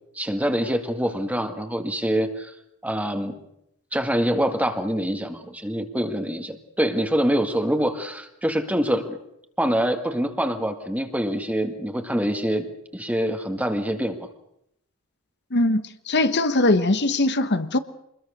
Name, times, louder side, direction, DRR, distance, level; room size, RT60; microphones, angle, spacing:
voice 1, 0.2-2.5 2.8-3.3 3.9-9.2 9.6-12.7 12.9-14.2, equal, 5° right, 5 dB, 1.9 m, -25 dB
voice 2, 15.5-17.8, left 2 dB, 55° left, 10 dB, 1.2 m, -21 dB
25.5 x 21.5 x 6.6 m, 0.77 s
head